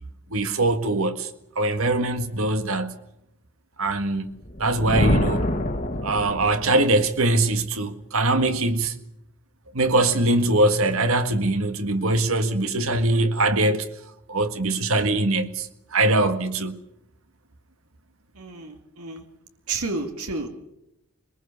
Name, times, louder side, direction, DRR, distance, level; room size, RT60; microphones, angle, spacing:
voice 1, 0.3-1.3 1.6-3.0 3.8-4.3 4.6-5.5 6.0-9.0 9.7-13.9 14.3-16.8, right 2 dB, 70° right, 1.7 m, -22 dB
Thunder, 4.4-6.9, left 1 dB, 35° left, 1.8 m, -25 dB
voice 2, 18.3-19.3 19.7-20.5, right 3 dB, 90° right, 2.4 m, -31 dB
22.5 x 21.5 x 7.0 m
head